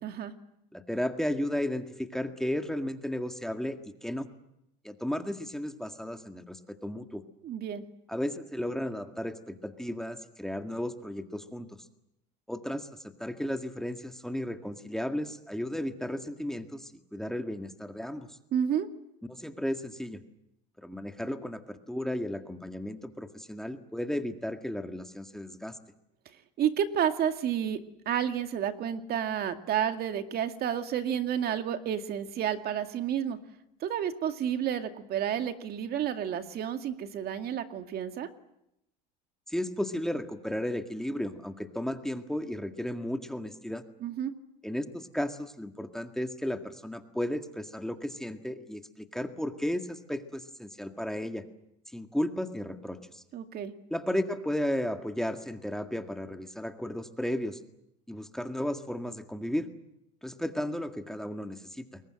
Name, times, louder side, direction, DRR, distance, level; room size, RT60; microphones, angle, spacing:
voice 1, 0.0-0.3 7.4-7.8 18.5-18.9 26.6-27.8 28.1-33.4 33.8-38.3 44.0-44.3 53.3-53.7, right 9 dB, 50° right, 7 dB, 2.2 m, -30 dB
voice 2, 0.7-4.3 4.8-7.2 8.1-11.7 12.5-12.9 13.2-18.4 19.3-20.2 20.8-25.8 39.5-43.8 44.6-51.4 51.9-53.2 53.9-57.6 58.1-59.7 60.2-62.0, left 1 dB, ahead, 6 dB, 1.9 m, -34 dB
29.5 x 22.0 x 7.8 m, 0.82 s
supercardioid pair, 105°, 20 cm